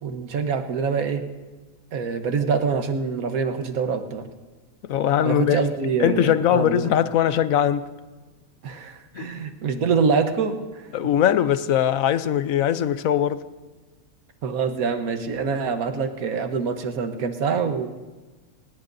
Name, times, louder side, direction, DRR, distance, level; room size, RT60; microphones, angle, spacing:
voice 1, 0.0-1.2 1.9-4.3 5.2-6.9 8.6-10.8 14.4-17.9, right 5 dB, 70° right, 1.5 m, -25 dB
voice 2, 4.8-5.7 6.0-7.9 9.1-9.3 10.9-13.4, left 10 dB, 70° left, 1.1 m, -21 dB
26.0 x 18.5 x 2.7 m
omnidirectional pair, 1.5 m